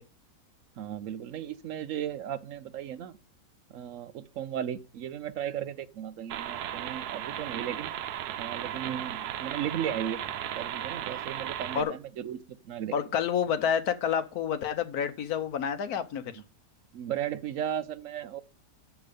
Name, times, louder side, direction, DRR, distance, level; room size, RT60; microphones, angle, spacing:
voice 1, 0.8-3.1 3.7-7.9 8.4-10.2 10.6-12.9 16.9-18.4, right 10 dB, 65° right, 0.9 m, -35 dB
sound 1, 6.3-11.8, right 11 dB, 85° right, 1.2 m, -36 dB
voice 2, 12.9-16.2, left 8 dB, 75° left, 1.4 m, -29 dB
7.3 x 6.9 x 5.2 m
omnidirectional pair, 1.6 m